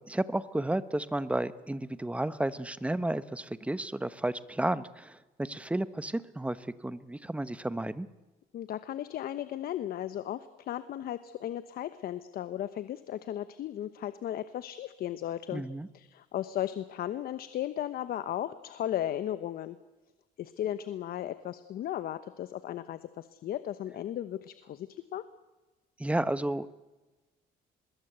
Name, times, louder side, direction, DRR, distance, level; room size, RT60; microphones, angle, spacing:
voice 1, 0.0-8.1 15.5-15.9 26.0-26.7, right 1 dB, 5° right, 14 dB, 1.1 m, -32 dB
voice 2, 8.5-15.6 15.9-19.8 20.4-25.2, left 11 dB, 65° left, 13 dB, 1.1 m, -36 dB
24.0 x 21.5 x 8.1 m, 1.2 s
cardioid pair, 110°, 17 cm